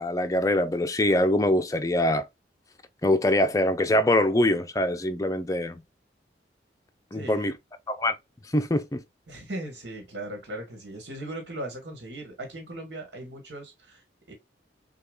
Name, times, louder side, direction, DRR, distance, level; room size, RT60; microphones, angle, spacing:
voice 1, 0.0-2.3 3.0-5.7 7.1-7.6 7.9-8.1 8.5-9.0, left 1 dB, 20° left, 0.5 m, -23 dB
voice 2, 7.1-7.5 9.3-14.3, right 1 dB, 70° right, 1.5 m, -38 dB
6.7 x 2.3 x 2.3 m
head